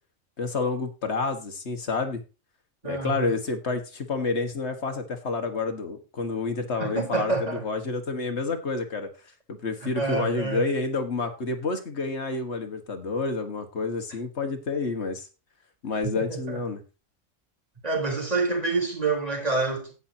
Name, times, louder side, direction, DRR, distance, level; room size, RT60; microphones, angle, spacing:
voice 1, 0.4-2.2 2.8-9.1 9.5-15.3 15.8-16.8, left 3 dB, 50° left, 1.8 m, -29 dB
voice 2, 2.8-3.4 6.8-7.6 9.8-10.7 16.0-16.6 17.8-19.9, right 3 dB, 25° right, 4.0 m, -27 dB
17.0 x 5.9 x 2.8 m
omnidirectional pair, 1.5 m